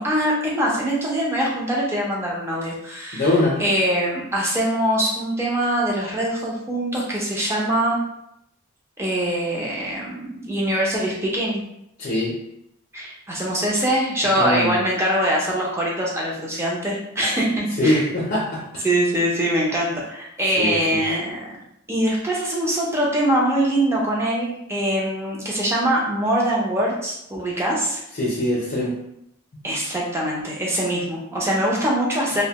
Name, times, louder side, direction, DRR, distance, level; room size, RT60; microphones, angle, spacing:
voice 1, 0.0-3.3 3.6-8.0 9.0-11.6 12.9-18.0 18.8-21.5 21.9-28.0 29.6-32.4, right 1 dB, 10° right, -3 dB, 0.5 m, -23 dB
voice 2, 3.1-3.6 12.0-12.3 14.4-14.7 17.8-18.8 20.6-21.0 28.1-29.0 29.5-29.7, left 1 dB, 45° left, -4 dB, 0.5 m, -22 dB
2.6 x 2.1 x 2.8 m, 0.79 s
head